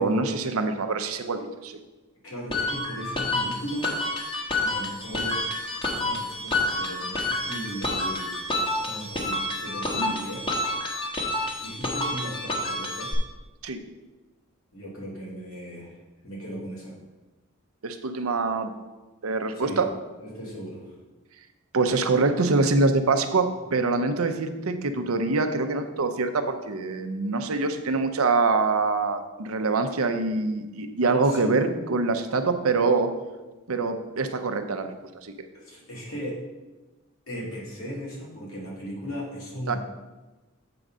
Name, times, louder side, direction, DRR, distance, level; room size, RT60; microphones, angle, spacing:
voice 1, 0.0-1.7 9.9-10.2 13.6-13.8 17.8-18.7 19.2-19.9 21.7-33.1 33.7-34.9 35.2-35.3 39.7-39.8, right 3 dB, 75° right, 7 dB, 0.7 m, -25 dB
voice 2, 2.2-3.9 4.6-5.4 5.8-8.4 8.8-10.5 11.6-13.1 14.7-16.0 16.2-16.9 19.5-19.8 20.2-20.9 31.2-31.5 35.5-36.4 37.3-39.8, equal, 70° left, -5 dB, 2.5 m, -37 dB
sound 1, 2.5-13.1, left 2 dB, 25° left, 1.1 m, -29 dB
7.8 x 3.9 x 6.1 m, 1.2 s
head